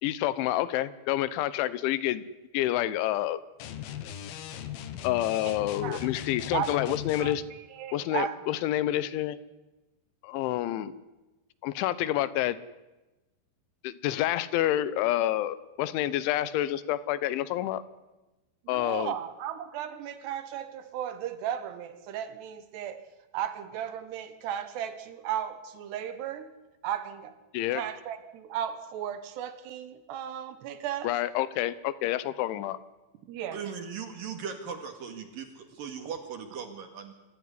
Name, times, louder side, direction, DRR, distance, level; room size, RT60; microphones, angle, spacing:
voice 1, 0.0-2.2 2.5-3.4 5.0-7.4 7.9-9.4 10.2-10.9 11.6-12.6 13.8-17.8 18.7-19.1 27.5-27.8 31.0-32.8, left 13 dB, 85° left, 16 dB, 3.3 m, -28 dB
sound 1, 3.6-7.4, left 11 dB, 65° left, 2.7 m, -38 dB
voice 2, 5.8-6.1 6.5-7.3 7.7-8.4 18.7-26.5 26.8-27.3 27.7-31.1 33.3-33.6, right 10 dB, 70° right, 11 dB, 3.1 m, -35 dB
voice 3, 33.5-37.1, right 6 dB, 55° right, 6 dB, 3.3 m, -38 dB
25.5 x 14.5 x 9.9 m, 1.1 s
omnidirectional pair, 5.4 m